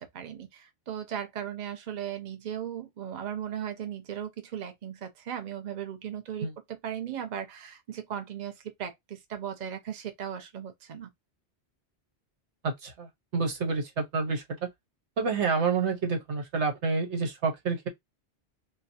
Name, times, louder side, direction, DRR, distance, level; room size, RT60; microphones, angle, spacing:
voice 1, 0.1-11.1, right 9 dB, 45° right, 0.8 m, -37 dB
voice 2, 12.6-13.1 13.3-14.7 15.2-17.9, right 4 dB, 90° right, 1.3 m, -28 dB
3.8 x 2.2 x 2.7 m
omnidirectional pair, 1.1 m